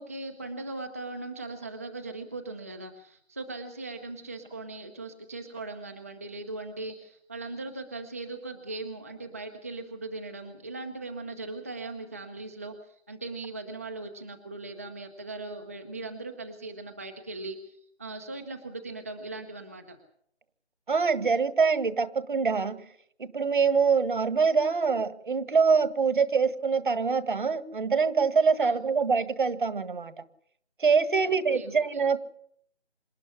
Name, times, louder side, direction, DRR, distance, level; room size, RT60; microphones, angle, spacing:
voice 1, 0.0-20.0 28.6-28.8 31.2-32.0, right 2 dB, 15° right, 5 dB, 0.8 m, -39 dB
voice 2, 20.9-22.8 23.2-30.1 30.8-32.2, right 5 dB, 50° right, 13 dB, 1.7 m, -24 dB
26.5 x 10.5 x 10.0 m, 0.65 s
figure-of-eight pair, 165°, 33 cm